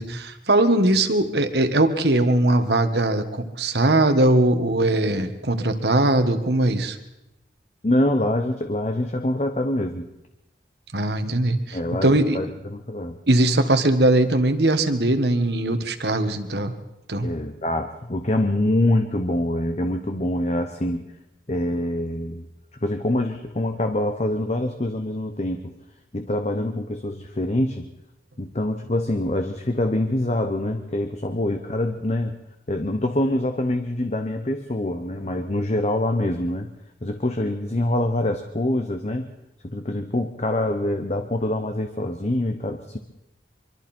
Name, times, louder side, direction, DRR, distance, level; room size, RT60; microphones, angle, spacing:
voice 1, 0.0-7.0 10.9-12.4 13.3-16.7 17.1-17.3, right 1 dB, 70° right, 8 dB, 1.8 m, -20 dB
voice 2, 7.8-10.1 11.7-13.2 17.2-21.1 21.5-22.5 22.8-25.7 26.1-27.9 28.4-32.3 32.7-36.7 37.0-39.3 39.6-43.0, left 1 dB, 40° left, 6 dB, 1.0 m, -25 dB
25.0 x 24.5 x 4.5 m, 0.92 s
head